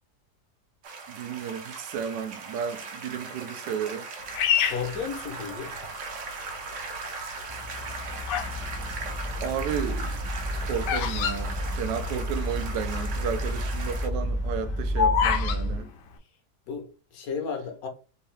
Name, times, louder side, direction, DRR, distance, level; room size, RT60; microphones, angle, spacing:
sound 1, 0.8-14.1, right 4 dB, 60° right, 0.8 m, -38 dB
voice 1, 1.1-4.1 9.4-10.2 10.6-15.9, right 7 dB, 90° right, 1.2 m, -33 dB
Bird vocalization bird call bird song, 4.3-5.9 6.5-6.9 7.7-8.6 8.9-12.4 12.7-12.8 12.9-13.3 13.7-15.6, left 8 dB, 85° left, 1.2 m, -27 dB
voice 2, 4.6-5.7 15.6-16.0 16.7-17.9, left 6 dB, 65° left, 1.1 m, -34 dB
sound 2, 7.5-15.8, equal, 15° right, 0.6 m, -31 dB
3.6 x 2.7 x 3.2 m
omnidirectional pair, 1.8 m